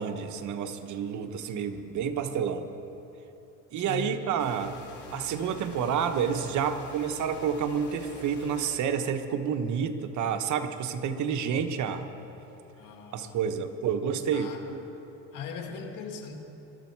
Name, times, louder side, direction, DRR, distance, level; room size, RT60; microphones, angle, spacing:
voice 1, 0.0-2.7 3.7-4.8 5.1-12.1 13.1-14.8, right 7 dB, 70° right, 7 dB, 1.1 m, -29 dB
voice 2, 3.8-4.3 12.8-13.5 14.3-14.6 15.3-16.4, left 6 dB, 90° left, 3 dB, 1.9 m, -39 dB
sound 1, 4.4-8.8, left 7 dB, 70° left, 2.2 m, -46 dB
21.5 x 13.0 x 4.6 m, 3.0 s
cardioid pair, 115°, 31 cm